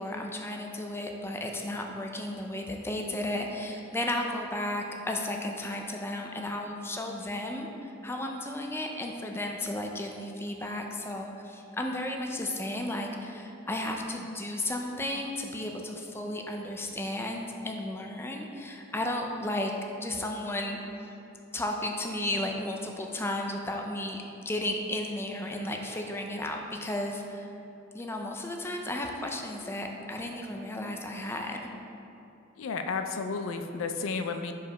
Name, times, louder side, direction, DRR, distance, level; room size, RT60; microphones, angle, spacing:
voice 1, 0.0-19.7 20.0-20.8 21.5-27.5 27.9-31.7, left 1 dB, 10° left, 2 dB, 0.5 m, -34 dB
voice 2, 32.6-34.5, left 4 dB, 75° left, 7 dB, 0.4 m, -32 dB
5.0 x 4.8 x 5.4 m, 2.8 s
head